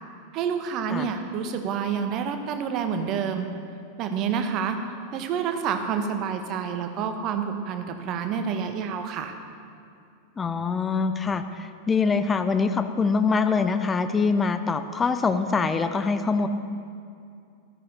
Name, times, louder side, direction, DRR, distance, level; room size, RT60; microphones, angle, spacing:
voice 1, 0.3-3.5 4.0-4.8 5.1-9.3, right 7 dB, 35° right, 7 dB, 1.2 m, -28 dB
voice 2, 10.4-16.5, left 4 dB, 15° left, 10 dB, 0.7 m, -24 dB
14.0 x 13.0 x 4.3 m, 2.4 s
figure-of-eight pair, 90°, 0 cm